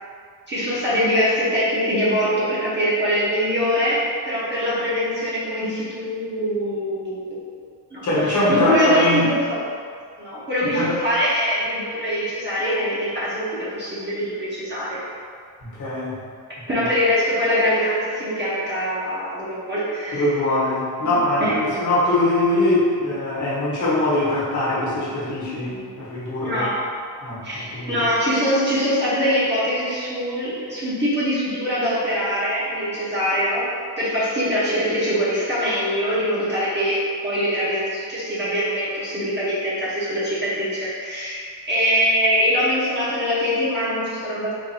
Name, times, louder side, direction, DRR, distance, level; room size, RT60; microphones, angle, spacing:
voice 1, 0.5-7.4 7.9-9.6 10.2-13.5 13.7-15.0 16.7-20.4 21.0-21.1 21.4-21.8 26.4-26.8 27.4-33.6 34.0-37.0 37.2-44.5, equal, 25° right, -10 dB, 0.8 m, -23 dB
voice 2, 8.0-9.2 10.7-10.9 15.6-16.1 16.8-16.9 20.1-26.7 27.2-28.0, left 1 dB, 40° left, -8 dB, 1.3 m, -22 dB
4.1 x 2.6 x 2.7 m, 2.1 s
cardioid pair, 115°, 43 cm